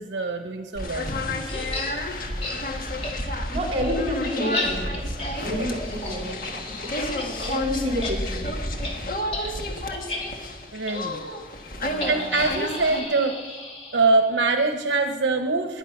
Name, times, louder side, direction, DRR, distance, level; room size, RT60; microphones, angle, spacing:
voice 1, 0.0-1.7 5.5-5.7 10.7-11.3 12.0-13.4 13.9-15.8, right 3 dB, 85° right, 5 dB, 0.9 m, -24 dB
sound 1, 0.8-13.0, left 1 dB, 50° left, 1.6 m, -31 dB
sound 2, 1.5-1.9 2.4-2.6 3.0-3.1 3.5-7.6 7.9-8.1 8.4-8.5 8.8-8.9 9.3-9.5 9.9-10.2 10.9-11.0 12.0-14.4, left 2 dB, 35° left, 2.8 m, -33 dB
voice 2, 3.5-5.1 5.4-6.9 7.5-9.0 11.8-12.5, equal, 35° right, -1 dB, 3.8 m, -30 dB
20.0 x 10.5 x 5.9 m, 1.5 s
head